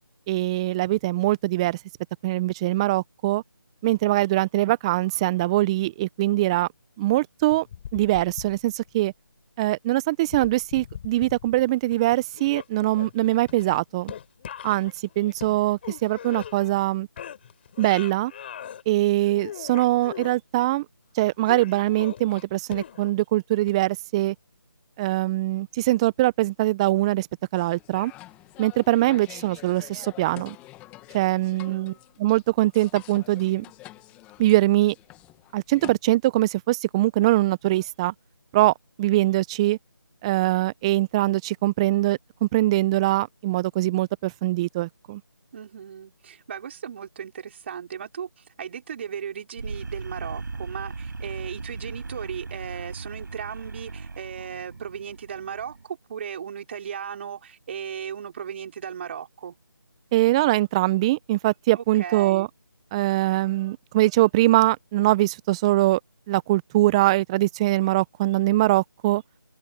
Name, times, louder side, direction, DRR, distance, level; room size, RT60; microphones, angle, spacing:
voice 1, 0.3-1.8 2.2-3.4 3.8-6.7 7.0-7.7 7.9-9.1 9.6-14.1 14.6-17.1 17.8-18.3 18.9-20.8 21.1-24.3 25.0-27.3 27.5-28.1 28.6-30.6 31.1-31.9 32.2-33.7 34.4-34.9 35.5-38.1 38.5-39.8 40.2-45.2 60.1-62.5 62.9-66.0 66.3-69.2, right 17 dB, 15° right, 1.0 m, -22 dB
sound 1, 7.5-9.0 10.2-11.6 11.9-16.9 17.2-18.8 19.2-20.4 21.4-23.2 23.7-23.8, left 9 dB, 30° left, 5.3 m, -40 dB
sound 2, 27.6-36.0, left 18 dB, 10° left, 1.8 m, -47 dB
voice 2, 31.7-32.0 45.5-59.6 61.7-62.5, right 8 dB, 30° right, 4.8 m, -36 dB
sound 3, 49.6-55.8, right 3 dB, 60° right, 5.9 m, -37 dB
figure-of-eight pair, 160°, 12 cm